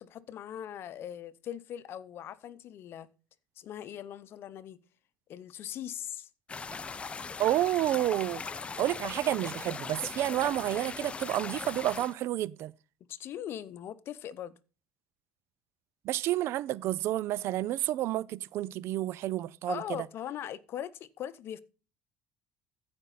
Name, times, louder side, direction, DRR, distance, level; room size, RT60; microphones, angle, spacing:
voice 1, 0.0-3.1 3.6-4.8 5.3-6.3 13.1-14.6 19.7-21.6, left 10 dB, 55° left, 0.8 m, -40 dB
sound 1, 6.5-12.1, left 5 dB, 25° left, 0.6 m, -39 dB
voice 2, 7.4-8.4 8.8-12.7 16.0-20.0, right 14 dB, 60° right, 0.5 m, -30 dB
14.5 x 5.3 x 4.1 m
supercardioid pair, 105°, 5 cm